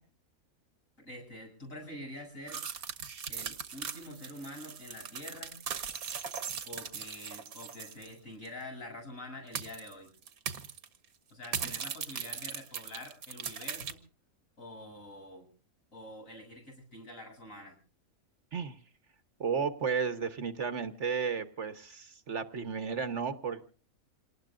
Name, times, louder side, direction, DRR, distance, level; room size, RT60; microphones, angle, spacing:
voice 1, 1.0-2.6 3.3-5.6 6.6-10.1 11.3-14.0 14.6-15.5 15.9-17.8, left 1 dB, 65° left, 0 dB, 8.3 m, -46 dB
sound 1, 2.5-8.1 8.4-8.5 9.5-9.9 10.3-10.9 11.4-13.9, right 7 dB, 80° right, 1.7 m, -39 dB
voice 2, 19.4-23.7, right 6 dB, 55° right, 11 dB, 1.4 m, -33 dB
27.0 x 19.0 x 2.5 m, 0.40 s
omnidirectional pair, 1.5 m